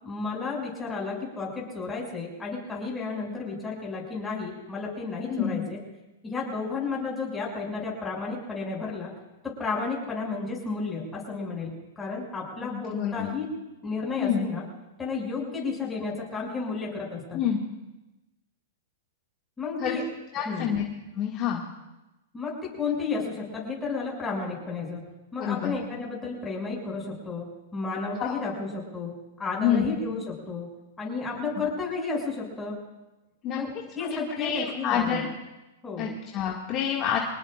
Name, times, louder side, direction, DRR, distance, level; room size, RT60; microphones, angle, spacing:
voice 1, 0.0-5.8 6.2-9.1 9.4-13.5 13.8-14.6 15.0-17.4 19.6-20.0 20.4-20.7 22.3-25.0 25.3-27.4 27.7-29.1 29.4-30.7 31.0-32.8 33.5-33.7 33.9-35.2 35.8-36.1, left 4 dB, 10° left, -3 dB, 6.4 m, -32 dB
voice 2, 5.3-5.6 12.6-13.3 14.2-14.5 17.3-17.6 19.8-20.0 20.3-20.8 21.1-21.6 25.4-25.8 28.2-28.3 29.6-30.0 33.4-33.6 34.0-35.3 36.0-37.2, left 8 dB, 30° left, -2 dB, 2.1 m, -28 dB
26.0 x 19.5 x 2.5 m, 0.99 s
hypercardioid pair, 145°, 0 cm